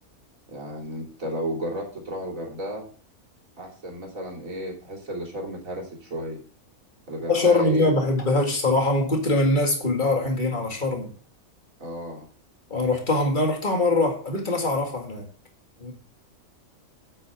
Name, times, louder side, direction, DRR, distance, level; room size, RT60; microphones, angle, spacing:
voice 1, 0.5-2.9 3.6-6.4 7.1-7.9 11.8-12.3, right 1 dB, 75° right, 3.4 m, -33 dB
voice 2, 7.3-11.1 12.7-15.3 15.8-15.9, left 2 dB, 35° left, 2.2 m, -23 dB
8.8 x 8.4 x 3.6 m
omnidirectional pair, 1.4 m